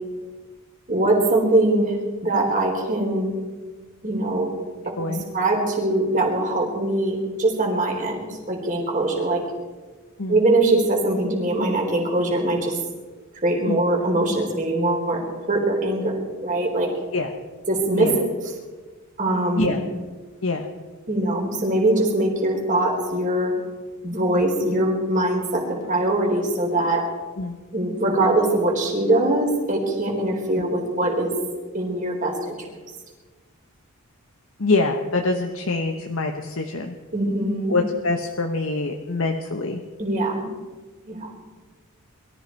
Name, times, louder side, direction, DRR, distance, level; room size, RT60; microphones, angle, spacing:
voice 1, 0.9-2.0 2.2-3.3 4.0-4.5 4.8-9.4 10.3-12.8 13.4-16.9 17.7-18.1 19.2-19.7 21.1-23.5 24.0-27.0 27.7-31.3 31.7-32.6 37.1-37.7 40.0-40.4 41.1-41.3, right 2 dB, 35° right, 0 dB, 4.1 m, -22 dB
voice 2, 34.6-36.9 37.7-39.8, left 3 dB, 65° left, 3 dB, 1.1 m, -25 dB
23.0 x 14.0 x 4.6 m, 1.3 s
head